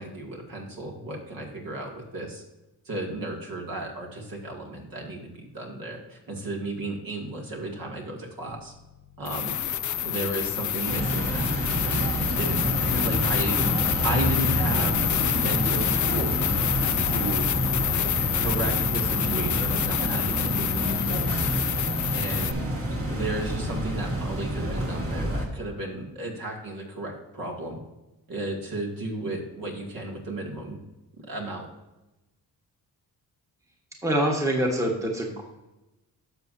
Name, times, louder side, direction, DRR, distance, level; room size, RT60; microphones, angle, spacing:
voice 1, 0.0-2.4 2.9-8.7 9.2-9.6 10.0-12.1 12.4-12.6 12.9-13.6 14.0-15.0 15.3-16.4 17.0-17.5 18.3-21.4 22.1-22.6 23.1-27.8 28.3-30.8 31.3-31.7, right 2 dB, 55° right, 0 dB, 2.3 m, -34 dB
sound 1, 8.5-8.6 9.2-22.5, left 11 dB, 50° left, 0.4 m, -27 dB
sound 2, 10.9-25.5, right 1 dB, 35° right, 1.8 m, -28 dB
voice 2, 34.0-35.4, right 1 dB, 10° right, 0 dB, 1.4 m, -25 dB
11.5 x 6.7 x 2.7 m, 1.0 s
cardioid pair, 105°, 40 cm